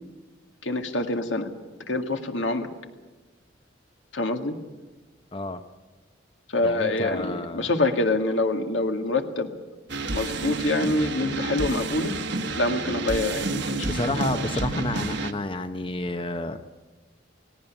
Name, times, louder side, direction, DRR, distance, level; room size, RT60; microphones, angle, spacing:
voice 1, 0.6-1.5 1.9-2.7 4.1-4.6 6.5-9.5 10.1-12.1 12.5-14.4, left 2 dB, 75° left, 5 dB, 2.1 m, -26 dB
voice 2, 6.6-7.7 13.8-16.6, left 2 dB, 25° left, 8 dB, 0.8 m, -30 dB
sound 1, 9.9-15.3, right 3 dB, 65° right, 1.3 m, -29 dB
18.0 x 18.0 x 9.7 m, 1.2 s
head